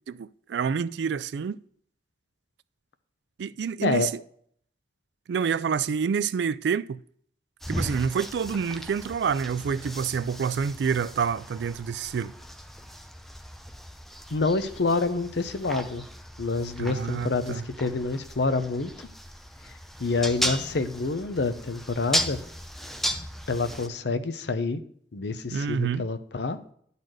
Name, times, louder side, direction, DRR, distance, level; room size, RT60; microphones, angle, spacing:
voice 1, 0.1-1.6 3.4-4.1 5.3-7.0 7.7-12.3 16.8-17.6 25.5-26.1, right 6 dB, 75° right, 0.3 m, -28 dB
sound 1, 7.6-23.9, equal, ahead, 0.5 m, -36 dB
voice 2, 14.3-16.0 16.4-18.9 20.0-22.4 23.5-24.8 25.1-26.6, left 3 dB, 75° left, 0.7 m, -27 dB
10.5 x 4.1 x 6.4 m
head